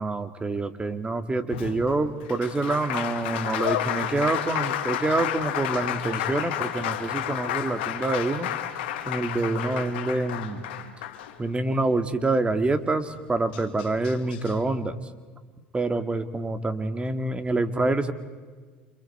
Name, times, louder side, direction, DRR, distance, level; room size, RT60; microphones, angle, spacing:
voice 1, 0.0-8.5 9.0-10.7 11.4-15.1 15.7-18.1, right 2 dB, 20° right, 9 dB, 2.3 m, -26 dB
Applause, 1.5-11.8 13.1-13.2 13.5-14.5, left 11 dB, 80° left, 1.9 m, -31 dB
28.5 x 27.5 x 4.6 m, 1.5 s
hypercardioid pair, 75°, 6 cm